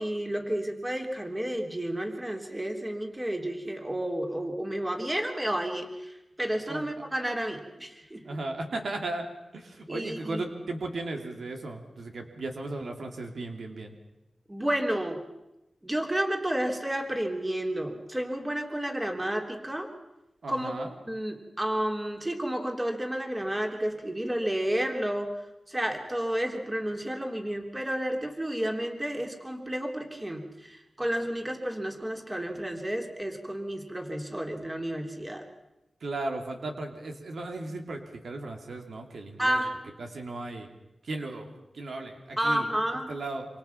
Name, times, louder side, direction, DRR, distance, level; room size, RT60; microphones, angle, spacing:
voice 1, 0.0-8.3 9.9-10.4 14.5-15.2 15.8-19.9 20.5-20.8 21.1-25.3 25.7-35.5 39.4-39.9 42.4-43.1, right 1 dB, 15° right, 3 dB, 3.4 m, -31 dB
voice 2, 8.2-9.3 9.5-13.9 20.4-20.9 36.0-39.6 40.0-40.7 41.0-42.7 43.1-43.5, right 2 dB, 75° right, 3 dB, 2.9 m, -36 dB
27.0 x 26.0 x 5.9 m, 0.95 s
wide cardioid pair, 90°, 0 cm